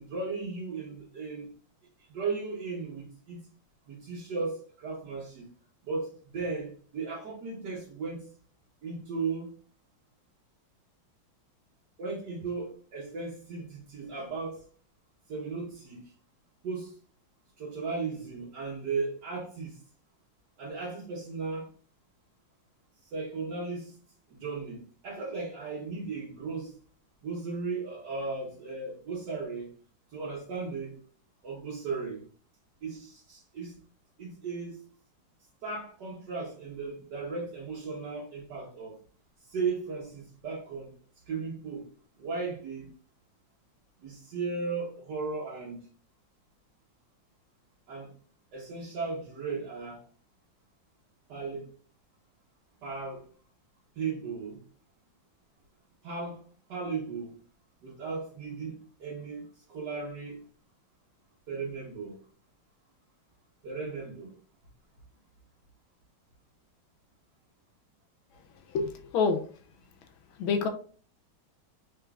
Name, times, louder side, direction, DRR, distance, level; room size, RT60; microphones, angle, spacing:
voice 1, 0.0-1.5 2.1-3.5 3.9-5.4 5.8-8.3 8.8-9.5 12.0-14.6 15.3-16.0 16.6-17.0 17.6-19.8 20.6-21.7 23.1-23.9 24.3-26.8 27.2-29.7 30.1-31.0 31.4-32.2 32.8-33.8 34.2-34.9 35.6-39.0 39.5-40.9 41.3-41.9 42.2-42.9 44.0-45.8 47.9-48.1 48.5-50.0 51.3-51.7 52.8-53.2 54.0-54.6 56.0-56.4 56.7-57.3 57.8-60.4 61.5-62.2 63.6-64.3, right 4 dB, 60° right, 1.5 m, -36 dB
voice 2, 68.7-69.4 70.4-70.7, left 5 dB, 85° left, 1.5 m, -26 dB
3.8 x 3.7 x 2.3 m
omnidirectional pair, 2.2 m